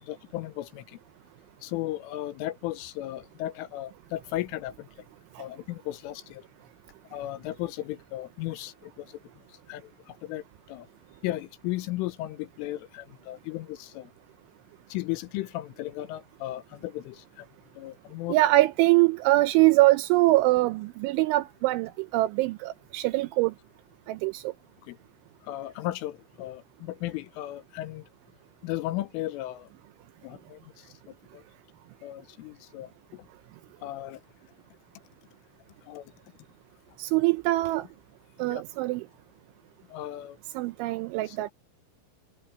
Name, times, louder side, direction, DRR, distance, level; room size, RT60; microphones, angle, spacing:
voice 1, 0.0-1.0 1.6-4.9 5.4-6.4 7.1-9.2 9.7-10.9 11.2-14.1 14.9-17.5 17.8-18.4 24.8-25.0 25.4-28.1 28.6-29.7 30.2-31.4 32.0-33.3 33.8-34.2 35.8-36.1 38.4-38.6 39.9-40.4 41.3-41.4, left 15 dB, 80° left, 3.4 m, -36 dB
voice 2, 18.3-23.5 24.1-24.5 37.0-37.9 38.4-39.1 40.6-41.5, right 18 dB, 80° right, 2.8 m, -23 dB
omnidirectional pair, 5.9 m